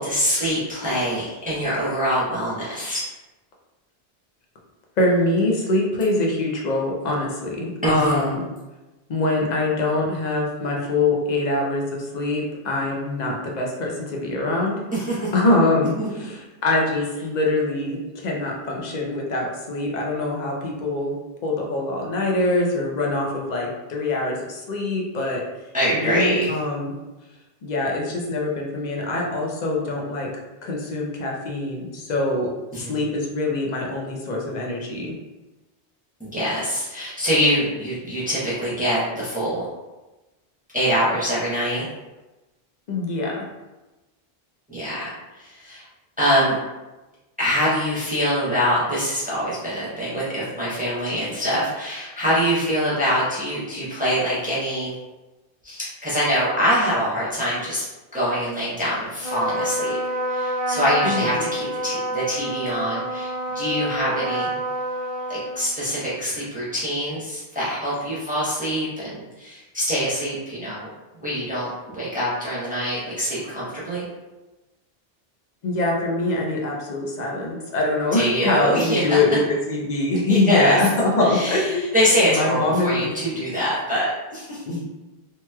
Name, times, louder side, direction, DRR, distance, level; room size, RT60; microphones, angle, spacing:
voice 1, 0.0-3.0 7.8-8.4 14.9-15.3 15.9-16.1 25.7-26.6 32.7-32.9 36.2-39.6 40.7-41.9 44.7-45.9 46.2-46.6 47.4-54.9 55.6-57.8 58.1-60.0 60.3-64.5 65.3-70.9 71.2-74.0 78.1-79.2 80.3-80.8 81.2-84.6, equal, 10° right, -9 dB, 0.8 m, -24 dB
voice 2, 5.0-8.4 9.1-14.8 15.3-25.4 25.9-26.9 27.6-30.3 30.6-32.5 32.8-35.2 42.9-43.4 61.0-61.5 75.6-80.9 81.2-81.8 82.2-83.1 84.6-84.8, left 2 dB, 50° left, -1 dB, 0.7 m, -24 dB
Trumpet, 59.2-66.0, right 1 dB, 50° right, 0.4 m, -28 dB
3.0 x 2.9 x 2.3 m, 1.1 s
omnidirectional pair, 1.0 m